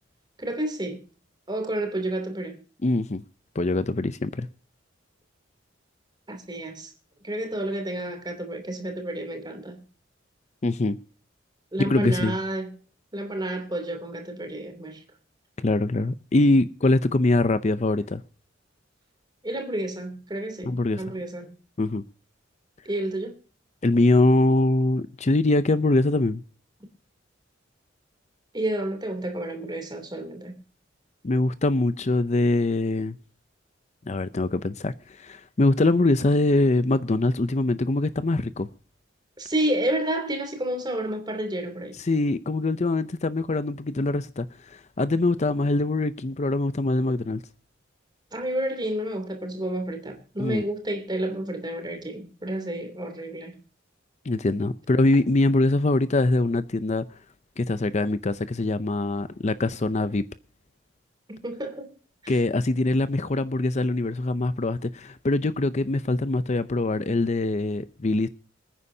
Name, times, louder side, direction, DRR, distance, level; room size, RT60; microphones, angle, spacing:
voice 1, 0.4-1.0 1.5-2.6 6.3-6.9 7.2-9.8 11.7-12.7 13.1-15.0 19.4-21.6 22.8-23.4 28.5-30.6 39.4-41.9 48.3-53.6 61.3-61.9 62.2-62.4, right 1 dB, 20° right, 2.9 m, -30 dB
voice 2, 2.8-3.2 3.5-4.5 10.6-11.0 11.8-12.4 15.6-18.2 20.6-21.0 21.8-22.0 23.8-26.4 31.2-33.2 34.1-38.7 42.0-47.4 50.4-50.6 54.2-57.0 57.6-60.2 62.3-68.3, left 2 dB, 35° left, 0.6 m, -23 dB
26.5 x 9.7 x 2.8 m
head